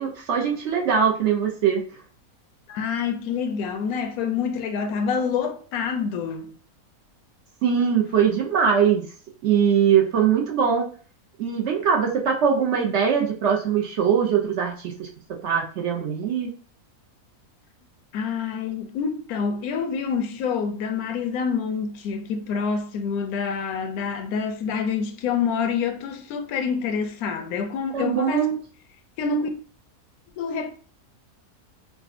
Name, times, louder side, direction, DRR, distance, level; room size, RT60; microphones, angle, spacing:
voice 1, 0.0-1.9 7.6-9.1 9.4-10.9 11.4-16.5 27.9-28.6, right 7 dB, 60° right, 0.8 m, -22 dB
voice 2, 2.7-6.5 18.1-28.5 29.2-29.5 30.4-30.7, left 6 dB, 80° left, 1.0 m, -27 dB
4.9 x 2.2 x 2.5 m
omnidirectional pair, 1.5 m